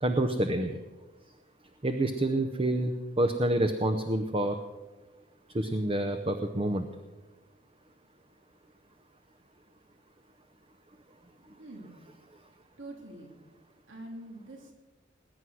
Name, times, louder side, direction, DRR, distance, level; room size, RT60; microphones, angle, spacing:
voice 1, 0.0-0.8 1.8-4.6 5.5-6.8, right 1 dB, 30° right, 7 dB, 0.7 m, -28 dB
voice 2, 11.6-12.0 12.8-13.3 13.9-14.7, right 1 dB, 80° right, 2 dB, 2.8 m, -45 dB
20.0 x 9.5 x 6.3 m, 1.2 s
head